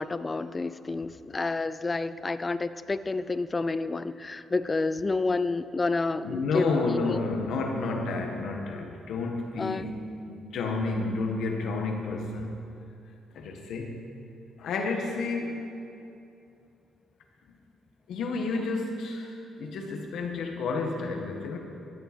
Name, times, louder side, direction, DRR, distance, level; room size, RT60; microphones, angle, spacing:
voice 1, 0.0-7.2 9.6-9.9, left 3 dB, 25° left, 14 dB, 0.4 m, -29 dB
voice 2, 6.2-10.0 10.3-12.6 13.3-14.1 14.6-15.7 18.1-21.6, left 3 dB, 75° left, 2 dB, 1.5 m, -30 dB
16.0 x 10.5 x 4.4 m, 2.7 s
cardioid pair, 90°, 0 cm